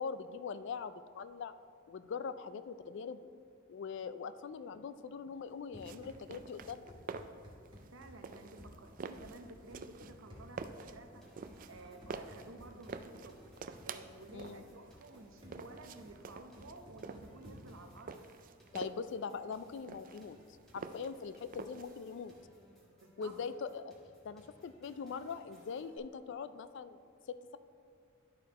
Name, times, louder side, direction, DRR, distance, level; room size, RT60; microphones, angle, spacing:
voice 1, 0.0-1.5 1.9-3.2 3.7-6.9 14.3-14.6 18.7-20.4 20.7-22.3 23.2-23.9 24.2-27.0 27.3-27.6, left 5 dB, 60° left, 13 dB, 0.3 m, -42 dB
Run, 5.4-17.8, equal, 25° right, 1.8 m, -56 dB
sound 1, 5.8-22.4, right 5 dB, 40° right, 0.3 m, -48 dB
voice 2, 7.9-11.2 11.7-13.4 13.8-18.2 23.0-23.4, right 2 dB, 65° right, 6 dB, 0.7 m, -53 dB
sound 2, 11.2-26.0, equal, ahead, 1.3 m, -65 dB
11.5 x 4.4 x 4.1 m, 2.4 s
head